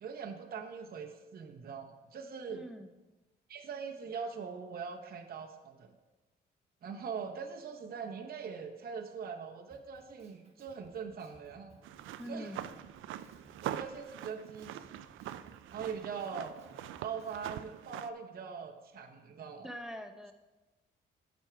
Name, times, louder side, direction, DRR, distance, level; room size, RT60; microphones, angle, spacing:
voice 1, 0.0-2.6 3.5-5.9 6.8-11.8 12.3-12.5 13.6-14.7 15.7-16.6 17.0-19.7, right 6 dB, 50° right, 2 dB, 0.9 m, -42 dB
voice 2, 2.5-2.9 12.2-12.7 19.6-20.3, equal, ahead, 7 dB, 0.7 m, -44 dB
Drum kit, 9.7-17.6, right 2 dB, 30° right, 1.5 m, -62 dB
sound 1, 11.8-18.1, right 11 dB, 80° right, 0.4 m, -43 dB
8.7 x 6.3 x 4.6 m, 1.1 s
cardioid pair, 90°, 20 cm